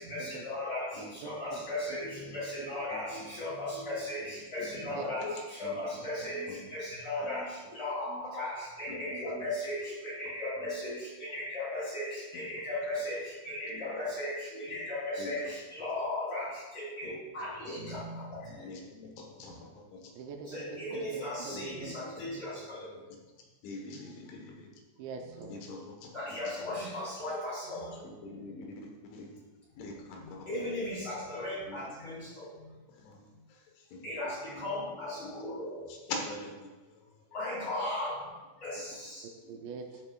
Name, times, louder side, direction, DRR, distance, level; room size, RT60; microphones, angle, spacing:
voice 1, 0.0-7.5 7.7-10.9 11.2-13.2 13.4-18.2 20.5-22.8 26.1-27.9 30.5-32.2 34.0-35.8 37.3-38.2 38.6-39.2, left 1 dB, 25° left, -7 dB, 3.1 m, -36 dB
voice 2, 1.2-1.6 2.6-2.8 5.0-5.1 20.1-21.9 25.0-25.6 39.5-40.0, right 4 dB, 80° right, 3 dB, 2.9 m, -43 dB
voice 3, 2.9-3.3 4.6-5.8 6.5-6.6 8.9-9.0 9.4-9.5 15.2-15.3 17.9-18.0 18.6-20.1 21.5-21.7 23.6-24.7 25.5-26.5 28.0-29.4 29.8-30.4 31.7-31.9 33.0-34.1 35.2-35.3 35.9-37.0, left 3 dB, 80° left, 1 dB, 3.6 m, -44 dB
14.0 x 7.6 x 2.4 m, 1.2 s
omnidirectional pair, 5.4 m